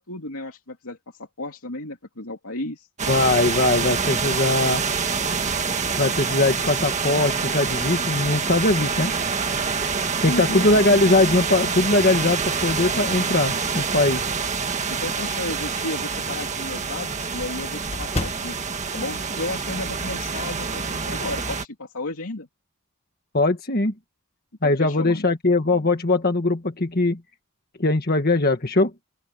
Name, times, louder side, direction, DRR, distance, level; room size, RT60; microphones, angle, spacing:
voice 1, 0.0-2.9 10.2-10.9 14.9-18.6 18.9-22.5 24.6-25.3, left 2 dB, 75° left, 2.7 m, -33 dB
sound 1, 3.0-21.6, right 5 dB, 30° right, 1.8 m, -26 dB
voice 2, 3.1-4.8 6.0-9.1 10.2-14.2 23.3-23.9 24.6-27.2 27.8-28.9, left 2 dB, 45° left, 1.6 m, -21 dB
sound 2, 7.6-8.9 9.5-9.6 11.0-11.6 12.0-14.7 15.1-15.2 15.6-15.7 16.0-16.1 16.3-20.1 20.4-20.6 20.9-21.5, left 2 dB, 25° left, 1.2 m, -38 dB
open air
head